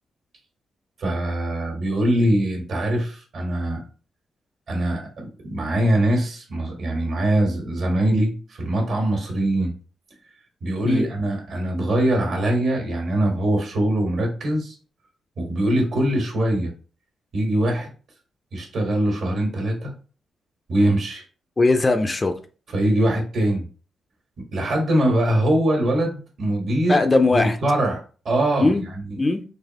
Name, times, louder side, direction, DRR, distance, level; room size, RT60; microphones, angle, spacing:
voice 1, 1.0-3.8 4.7-9.7 10.6-14.7 15.4-16.7 17.3-17.9 18.5-19.9 20.7-21.2 22.7-23.7 24.5-27.0 27.3-29.0, right 1 dB, 60° right, 1.5 m, -22 dB
voice 2, 21.6-22.3 26.9-27.6 28.6-28.8 29.2-29.4, left 3 dB, 25° left, 0.4 m, -19 dB
4.0 x 2.7 x 2.8 m
cardioid pair, 120°, 0 cm